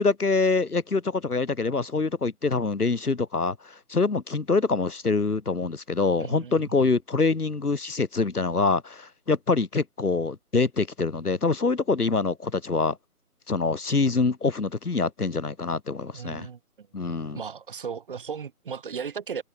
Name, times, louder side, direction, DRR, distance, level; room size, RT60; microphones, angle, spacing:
voice 1, 0.0-13.0 13.5-16.5 16.9-17.4, left 4 dB, 75° left, 2.1 m, -25 dB
voice 2, 6.2-6.9 16.1-16.9 17.3-19.4, right 6 dB, 35° right, 3.0 m, -36 dB
figure-of-eight pair, 155°, 46 cm